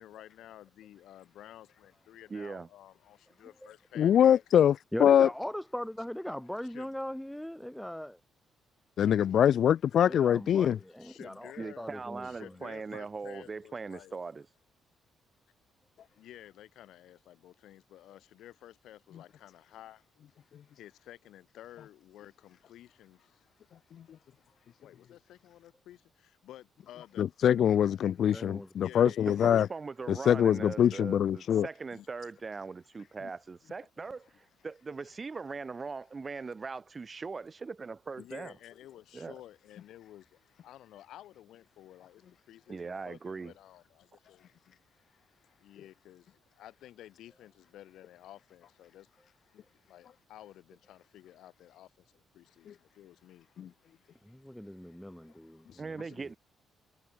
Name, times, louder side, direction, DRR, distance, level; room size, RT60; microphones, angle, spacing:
voice 1, 0.0-4.8 6.6-6.9 9.0-9.1 11.0-11.9 12.2-14.2 16.1-20.0 20.8-23.4 24.8-27.3 28.8-29.4 31.9-32.1 38.2-42.2 42.5-44.4 45.6-49.1 49.5-53.5 53.9-54.0, left 13 dB, 80° left, 6.1 m, -52 dB
voice 2, 2.3-2.7 11.6-14.5 29.3-38.5 39.1-39.4 42.7-43.5 55.8-56.3, right 4 dB, 30° right, 0.7 m, -40 dB
voice 3, 4.0-5.3 9.0-10.8 27.2-29.7 30.1-31.7 53.6-53.7 55.7-55.8, left 9 dB, 65° left, 0.5 m, -24 dB
voice 4, 4.9-8.2 10.0-11.5 11.8-12.5 28.3-28.7 54.2-56.4, equal, 5° left, 1.5 m, -40 dB
cardioid pair, 90°, 0 cm